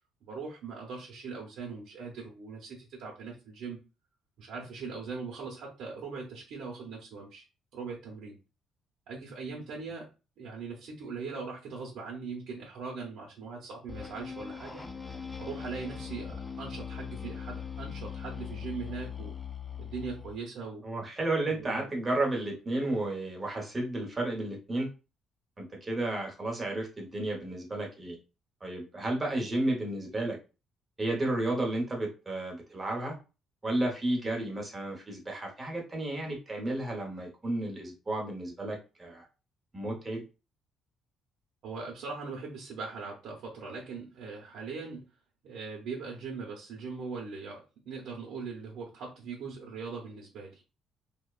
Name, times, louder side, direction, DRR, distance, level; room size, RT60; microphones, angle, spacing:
voice 1, 0.2-3.8 4.4-7.4 7.7-8.4 9.1-10.1 10.4-14.8 15.4-19.3 19.8-20.8 21.5-21.9 41.6-45.0 45.4-50.6, right 4 dB, 75° right, -4 dB, 0.7 m, -40 dB
sound 1, 13.9-20.4, left 7 dB, 10° left, 0.3 m, -40 dB
voice 2, 20.8-24.9 25.6-28.2 28.6-30.4 31.0-33.2 33.6-39.2 39.7-40.2, right 2 dB, 20° right, 0 dB, 0.9 m, -32 dB
2.8 x 2.1 x 2.3 m, 0.31 s
cardioid pair, 125°, 0 cm